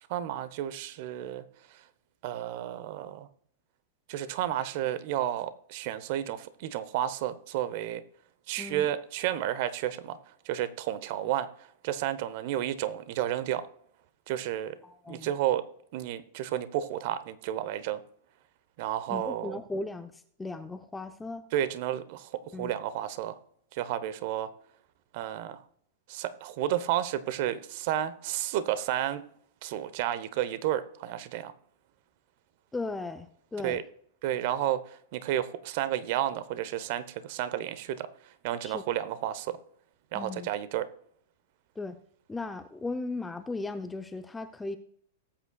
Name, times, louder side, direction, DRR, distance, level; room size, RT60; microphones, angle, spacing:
voice 1, 0.1-1.4 2.2-3.3 4.1-8.0 8.5-10.2 10.4-11.5 11.8-13.6 14.3-14.8 15.1-15.6 15.9-18.0 18.8-19.6 21.5-22.3 22.6-23.4 23.7-24.5 25.1-25.6 26.1-29.2 29.6-31.5 33.6-33.8 34.2-38.1 38.4-39.6 40.1-40.9, right 12 dB, 55° right, 14 dB, 1.0 m, -31 dB
voice 2, 14.8-15.3 19.1-21.4 22.5-22.7 32.7-33.8 38.6-38.8 40.1-40.5 41.8-42.0 42.3-44.8, left 3 dB, 10° left, 9 dB, 0.7 m, -37 dB
18.5 x 8.7 x 2.4 m, 0.66 s
hypercardioid pair, 105°, 0 cm